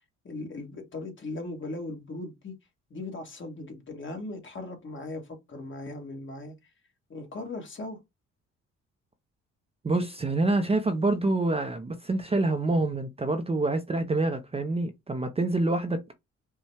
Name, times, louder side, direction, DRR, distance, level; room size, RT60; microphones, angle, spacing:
voice 1, 0.2-2.5 2.9-6.5 7.1-8.0, left 2 dB, 40° left, 1.6 m, -38 dB
voice 2, 9.8-16.0, right 2 dB, 20° right, 0.5 m, -26 dB
5.3 x 2.2 x 3.3 m
cardioid pair, 90°, 30 cm